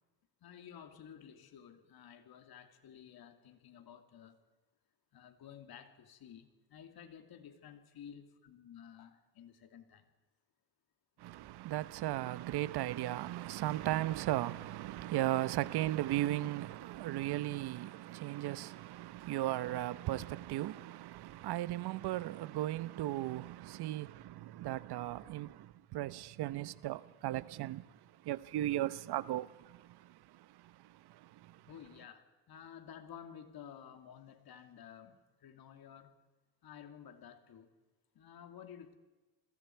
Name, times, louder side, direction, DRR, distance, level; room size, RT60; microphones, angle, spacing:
voice 1, 0.4-4.4 5.1-10.1 31.7-36.2 36.6-37.7 38.1-38.9, left 8 dB, 55° left, 2.8 m, -53 dB
voice 2, 11.2-27.8 28.2-31.6, right 15 dB, 65° right, 1.0 m, -37 dB
29.5 x 21.5 x 4.6 m
supercardioid pair, 80°, 42 cm